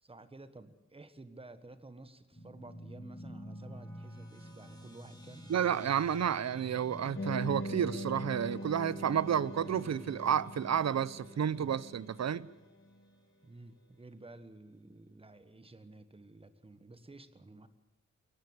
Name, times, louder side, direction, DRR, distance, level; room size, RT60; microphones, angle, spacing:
voice 1, 0.0-5.5 13.4-17.7, right 2 dB, 20° right, 1.4 m, -53 dB
sound 1, 2.3-13.1, equal, 15° left, 4.7 m, -49 dB
voice 2, 5.5-12.5, right 8 dB, 60° right, 0.7 m, -31 dB
sound 2, 7.2-12.7, equal, 40° left, 2.2 m, -42 dB
22.0 x 18.5 x 8.1 m
wide cardioid pair, 175°, 30 cm